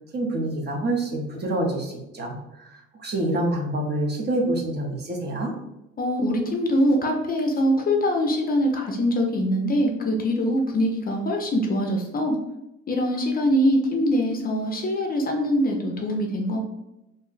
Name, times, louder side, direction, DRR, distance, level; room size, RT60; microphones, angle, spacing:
voice 1, 0.1-2.7 3.0-5.5, right 1 dB, 35° right, 0 dB, 0.6 m, -26 dB
voice 2, 6.0-12.4 12.9-16.6, equal, 30° left, 1 dB, 0.4 m, -23 dB
2.6 x 2.0 x 3.8 m, 0.90 s
cardioid pair, 130°, 29 cm